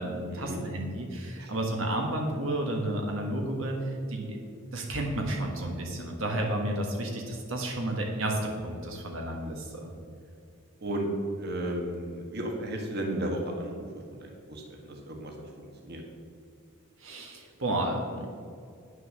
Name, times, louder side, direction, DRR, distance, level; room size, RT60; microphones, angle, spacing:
voice 1, 0.0-4.4 4.7-9.9 17.0-18.3, right 1 dB, 70° right, 1 dB, 1.4 m, -31 dB
voice 2, 11.3-16.0, right 1 dB, 50° right, 1 dB, 1.4 m, -34 dB
9.4 x 6.5 x 6.4 m, 2.4 s
head